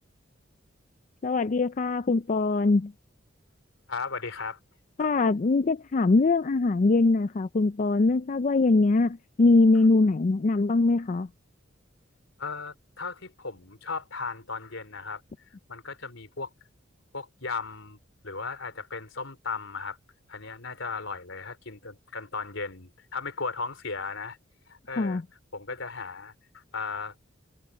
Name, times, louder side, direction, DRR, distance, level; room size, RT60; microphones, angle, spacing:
voice 1, 1.2-2.9 5.0-11.3 25.0-25.2, left 3 dB, 40° left, 0.4 m, -22 dB
voice 2, 3.9-4.6 5.0-5.1 12.4-15.2 15.7-16.5 17.1-18.0 18.2-20.0 20.3-24.4 24.7-25.2 25.5-27.3, left 4 dB, 85° left, 3.5 m, -36 dB
head